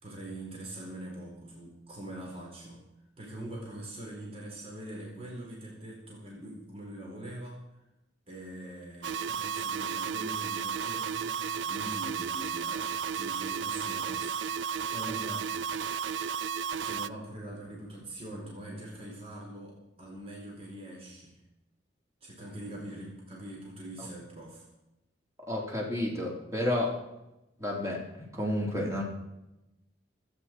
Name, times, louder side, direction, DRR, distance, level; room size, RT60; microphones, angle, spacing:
voice 1, 0.0-2.8 3.2-7.6 8.3-11.4 11.7-15.5 16.8-21.4 22.2-24.7, right 1 dB, 30° right, -2 dB, 4.2 m, -43 dB
sound 1, 9.0-17.1, right 7 dB, 75° right, 0.5 m, -33 dB
voice 2, 25.5-27.0 27.6-29.0, left 1 dB, 15° right, -2 dB, 4.1 m, -31 dB
28.0 x 9.7 x 4.6 m, 0.91 s
head